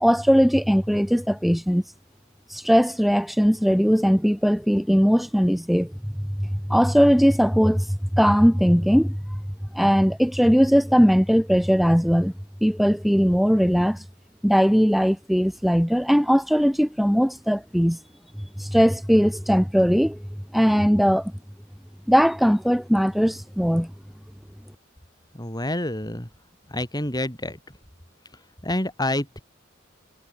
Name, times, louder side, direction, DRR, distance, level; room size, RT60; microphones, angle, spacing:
voice 1, 0.0-1.8 2.5-5.9 6.4-9.2 9.7-12.3 12.6-14.0 14.4-18.0 18.6-20.2 20.5-21.3 22.1-23.9, equal, ahead, 7.2 m, -19 dB
voice 2, 25.4-26.3 26.7-27.6 28.6-29.4, left 1 dB, 20° left, 6.5 m, -27 dB
head